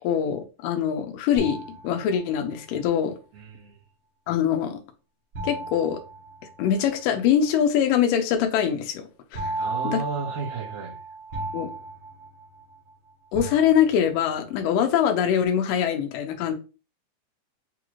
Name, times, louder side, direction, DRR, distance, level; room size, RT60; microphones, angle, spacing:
voice 1, 0.0-3.2 4.3-4.8 5.4-6.0 6.6-9.5 9.8-10.0 11.5-11.7 13.3-16.5, left 9 dB, 85° left, 2.3 m, -23 dB
sound 1, 1.4-2.6 5.3-7.0 9.3-12.9 13.3-14.3, right 2 dB, 55° right, 1.4 m, -35 dB
voice 2, 3.3-3.8 9.5-11.0 11.3-11.7, right 4 dB, 80° right, 3.0 m, -34 dB
6.8 x 2.4 x 3.0 m
omnidirectional pair, 3.8 m